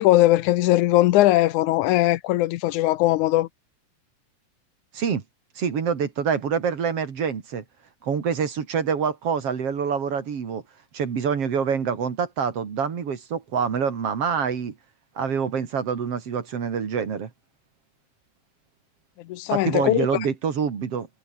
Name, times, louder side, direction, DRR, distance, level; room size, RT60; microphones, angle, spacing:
voice 1, 0.0-3.5 19.2-20.1, left 16 dB, 90° left, 2.2 m, -20 dB
voice 2, 5.6-7.6 8.0-10.6 10.9-14.7 15.2-17.3 19.5-21.1, right 6 dB, 50° right, 3.2 m, -26 dB
omnidirectional pair, 3.4 m